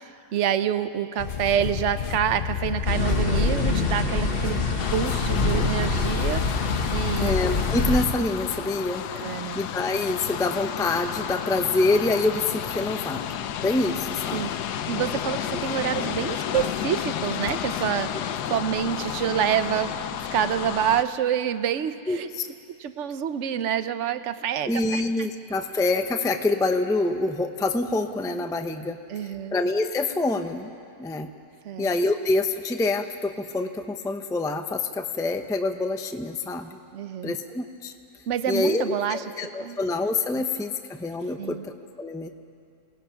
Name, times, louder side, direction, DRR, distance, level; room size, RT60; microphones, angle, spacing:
voice 1, 0.0-4.6 4.9-6.4 6.9-7.3 9.1-9.6 14.3-14.5 14.9-18.2 18.4-20.0 20.3-22.3 22.8-25.3 29.1-29.6 31.6-31.9 36.9-37.3 38.3-39.2 39.6-39.8 40.3-40.4 41.4-41.6, right 9 dB, 55° right, 11 dB, 1.0 m, -27 dB
sound 1, 1.2-8.2, left 8 dB, 65° left, 0.5 m, -31 dB
sound 2, 2.9-8.1, left 2 dB, 40° left, 1.5 m, -26 dB
sound 3, 4.8-21.0, left 9 dB, 85° left, 1.3 m, -32 dB
voice 2, 7.2-9.0 9.5-13.2 13.6-14.5 15.5-15.6 18.1-18.2 22.1-22.5 24.7-30.7 31.0-31.3 31.8-36.8 37.2-37.9 38.5-42.3, left 2 dB, 5° left, 6 dB, 0.4 m, -26 dB
28.0 x 19.0 x 5.8 m, 2.4 s
omnidirectional pair, 1.7 m